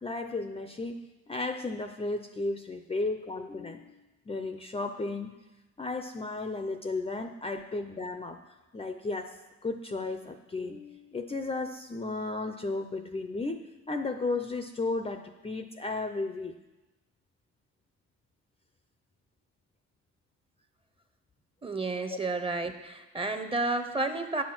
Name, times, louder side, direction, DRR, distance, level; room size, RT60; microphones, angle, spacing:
voice 1, 0.0-4.0 4.3-5.3 5.8-8.4 8.7-9.4 9.6-13.6 13.9-16.5 22.1-22.2, left 3 dB, 20° left, 7 dB, 0.6 m, -34 dB
voice 2, 21.6-24.4, right 2 dB, 20° right, 8 dB, 0.9 m, -31 dB
9.3 x 6.3 x 6.0 m, 1.1 s
cardioid pair, 90°, 30 cm